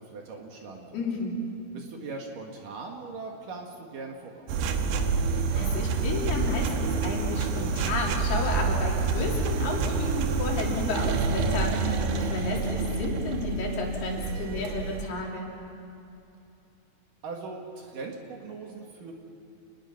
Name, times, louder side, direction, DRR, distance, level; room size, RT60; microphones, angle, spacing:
voice 1, 0.0-1.1 1.7-4.5 17.2-19.1, right 4 dB, 60° right, 1 dB, 3.1 m, -40 dB
voice 2, 0.9-1.4 5.3-15.5, left 3 dB, 70° left, -2 dB, 5.0 m, -32 dB
sound 1, 4.5-15.0, right 4 dB, 75° right, 2.9 m, -27 dB
29.0 x 20.5 x 5.8 m, 2.8 s
omnidirectional pair, 4.8 m